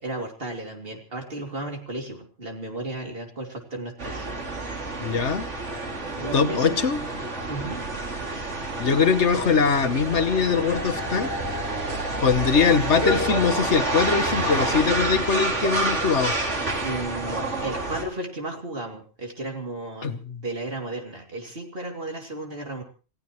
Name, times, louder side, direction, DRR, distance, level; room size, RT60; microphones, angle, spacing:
voice 1, 0.0-4.3 6.1-6.8 7.5-7.8 14.4-14.5 16.8-20.1 20.4-22.8, right 1 dB, 50° right, 3 dB, 3.0 m, -34 dB
sound 1, 4.0-18.0, right 2 dB, 80° right, 2.9 m, -28 dB
voice 2, 5.0-5.4 6.3-7.0 8.8-11.3 12.2-16.3 20.0-20.4, left 5 dB, 75° left, 9 dB, 1.5 m, -22 dB
28.0 x 15.5 x 3.1 m, 0.35 s
omnidirectional pair, 1.2 m